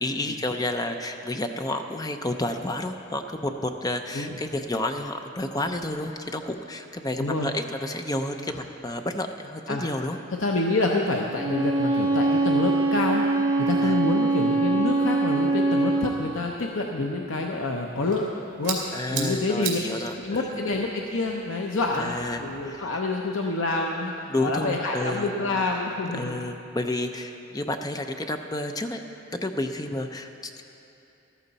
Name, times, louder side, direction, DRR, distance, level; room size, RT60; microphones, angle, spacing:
voice 1, 0.0-10.2 13.8-14.0 18.9-20.6 22.0-23.0 24.3-25.3 26.1-29.0 29.3-30.6, left 1 dB, 20° left, 6 dB, 0.5 m, -30 dB
voice 2, 7.2-7.5 9.7-9.8 10.4-13.2 13.6-18.3 18.6-18.8 19.1-19.8 20.2-26.4, left 2 dB, 70° left, 0 dB, 0.7 m, -27 dB
Bowed string instrument, 11.3-16.2, right 2 dB, 20° right, 0.8 m, -23 dB
sound 1, 17.8-22.8, right 5 dB, 60° right, 2.3 m, -37 dB
14.0 x 13.0 x 4.1 m, 2.8 s
head